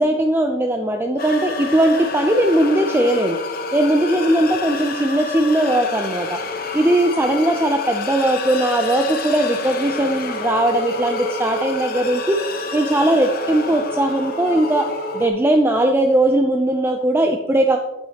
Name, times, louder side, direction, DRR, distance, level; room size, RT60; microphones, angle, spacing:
voice 1, 0.0-3.4 3.7-6.4 6.7-12.4 12.7-14.9 15.1-17.8, right 1 dB, 10° right, 4 dB, 0.4 m, -19 dB
sound 1, 1.2-15.3, left 2 dB, 45° left, 0.9 m, -28 dB
8.8 x 8.5 x 2.8 m, 1.0 s
head